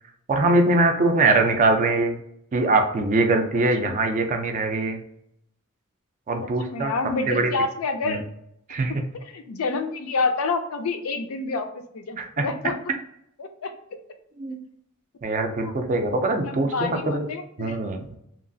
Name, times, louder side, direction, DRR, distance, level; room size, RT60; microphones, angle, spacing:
voice 1, 0.3-2.2 2.5-5.0 6.3-6.9 7.3-7.5 8.1-8.2 8.7-8.9 12.2-12.5 14.4-14.6 15.2-16.7 17.1-17.3 17.6-18.1, right 2 dB, 35° right, 5 dB, 0.4 m, -22 dB
voice 2, 6.4-8.2 9.1-12.8 13.4-13.7 15.6-15.7 16.5-17.8, left 3 dB, 75° left, 7 dB, 0.4 m, -28 dB
2.9 x 2.3 x 2.6 m, 0.76 s
head